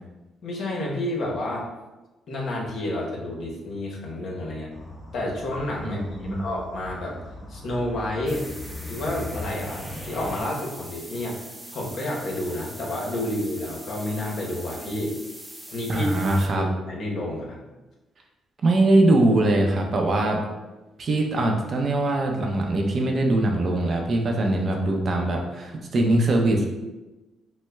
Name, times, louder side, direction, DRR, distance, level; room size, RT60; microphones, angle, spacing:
voice 1, 0.4-1.7 2.3-4.7 5.1-7.2 7.5-8.4 8.9-11.4 11.7-15.2 15.7-16.1 16.6-17.7, left 1 dB, 65° left, -2 dB, 1.0 m, -30 dB
sound 1, 4.7-10.4, left 1 dB, 15° left, 1.0 m, -39 dB
voice 2, 5.8-6.5 15.9-16.7 18.6-20.4 21.0-26.7, right 2 dB, 50° right, 2 dB, 0.6 m, -22 dB
sound 2, 8.3-16.5, right 1 dB, 5° right, 0.6 m, -42 dB
6.1 x 2.1 x 2.3 m, 1.1 s
cardioid pair, 90°, 0 cm